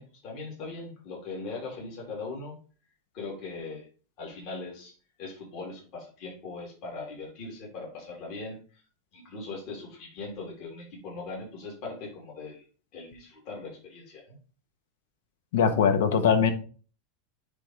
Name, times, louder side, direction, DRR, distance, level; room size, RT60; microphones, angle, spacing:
voice 1, 0.0-2.6 3.1-3.9 4.2-4.9 5.2-8.8 9.1-12.6 12.9-14.3, left 3 dB, 50° left, -3 dB, 3.2 m, -40 dB
voice 2, 15.5-16.5, left 6 dB, 85° left, 8 dB, 1.2 m, -21 dB
9.7 x 3.7 x 3.3 m, 0.38 s
supercardioid pair, 145°, 0 cm